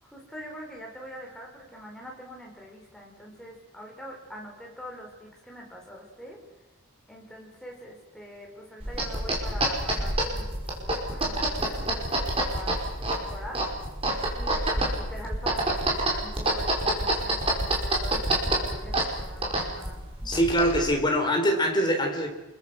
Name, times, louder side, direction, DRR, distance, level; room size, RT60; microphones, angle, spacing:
voice 1, 0.0-6.4 7.1-12.9 13.1-13.6 14.3-20.0, equal, 5° left, -1 dB, 5.2 m, -44 dB
sound 1, 8.8-20.9, right 1 dB, 25° right, 5.4 m, -28 dB
voice 2, 20.3-22.3, equal, 20° left, 2 dB, 3.8 m, -23 dB
29.5 x 22.5 x 6.3 m, 1.0 s
head